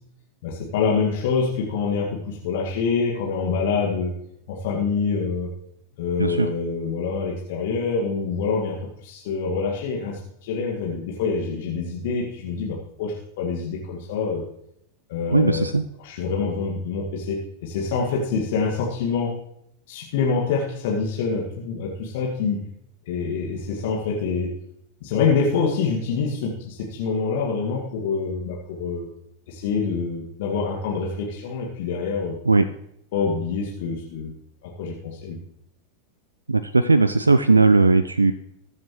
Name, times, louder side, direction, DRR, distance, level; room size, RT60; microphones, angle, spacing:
voice 1, 0.4-4.1 4.5-5.5 6.0-14.4 15.1-15.6 16.0-19.4 19.9-22.6 23.1-24.5 25.0-29.1 29.5-32.4 33.1-34.3 34.6-35.4, left 5 dB, 50° left, -2 dB, 2.0 m, -26 dB
voice 2, 15.3-15.8 32.5-32.6 36.5-38.3, right 3 dB, 80° right, 13 dB, 0.4 m, -18 dB
20.5 x 7.4 x 3.2 m, 0.77 s
figure-of-eight pair, 90°, 0 cm